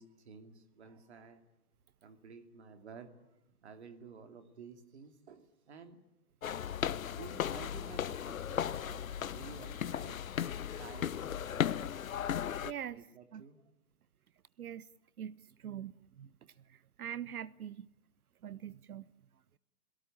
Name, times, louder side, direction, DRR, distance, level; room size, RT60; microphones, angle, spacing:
voice 1, 0.0-1.4 2.0-3.2 3.6-6.0 7.0-10.2 10.8-12.1 12.9-13.7, right 5 dB, 45° right, 2.6 m, -52 dB
sound 1, 6.4-12.7, left 9 dB, 60° left, 0.9 m, -36 dB
voice 2, 12.6-13.1 13.3-13.4 14.6-14.9 15.2-16.3 16.7-17.9 18.4-19.1, right 10 dB, 70° right, 0.8 m, -43 dB
27.5 x 18.0 x 8.9 m
hypercardioid pair, 180°, 46 cm